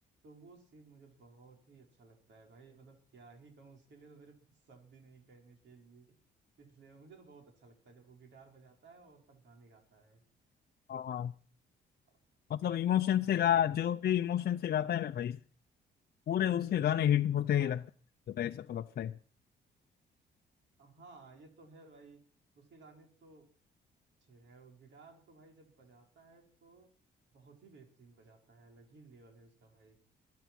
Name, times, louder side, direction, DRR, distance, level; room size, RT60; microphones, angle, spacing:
voice 1, 0.2-6.1 6.6-10.2 13.1-13.7 17.6-17.8 20.8-22.2 22.6-23.5 24.2-26.9 27.3-30.0, right 4 dB, 65° right, 4.4 m, -58 dB
voice 2, 10.9-11.3 12.5-15.4 16.3-17.8 18.3-19.2, left 10 dB, 55° left, 0.6 m, -30 dB
22.0 x 9.4 x 6.0 m
cardioid pair, 90°, 20 cm